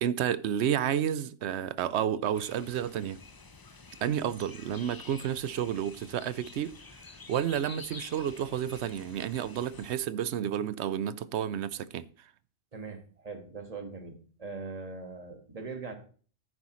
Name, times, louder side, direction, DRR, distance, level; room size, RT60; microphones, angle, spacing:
voice 1, 0.0-3.2 4.0-6.7 7.3-12.1, right 9 dB, 80° right, 0.9 m, -31 dB
sound 1, 2.3-10.0, left 4 dB, 25° left, 0.5 m, -49 dB
voice 2, 12.7-15.9, right 4 dB, 35° right, 1.6 m, -41 dB
11.0 x 9.6 x 3.1 m
omnidirectional pair, 1.1 m